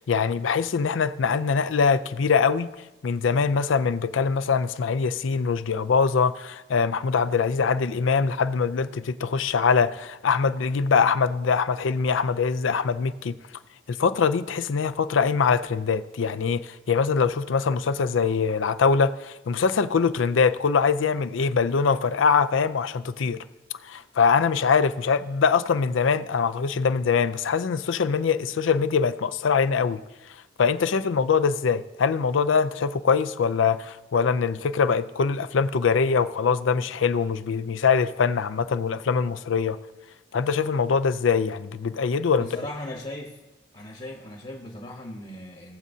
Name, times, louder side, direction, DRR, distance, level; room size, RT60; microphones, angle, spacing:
voice 1, 0.0-2.7 3.0-13.3 13.9-23.4 23.8-30.0 30.6-39.8 40.3-42.5, left 5 dB, 85° left, 0.5 m, -23 dB
voice 2, 42.3-43.4 43.7-45.8, left 1 dB, 35° left, 1.1 m, -38 dB
18.5 x 7.4 x 2.7 m
head